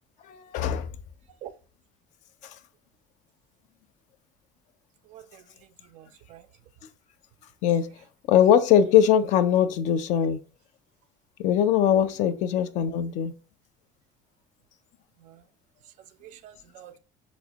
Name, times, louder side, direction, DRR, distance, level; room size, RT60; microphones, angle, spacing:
voice 1, 0.3-0.9 7.6-7.9 8.3-10.4 11.4-13.3, left 9 dB, 60° left, 0.4 m, -21 dB
voice 2, 5.1-5.4 5.9-6.4 15.2-15.4 16.2-17.0, right 11 dB, 60° right, 0.4 m, -46 dB
4.1 x 2.1 x 2.8 m
cardioid pair, 115°, 14 cm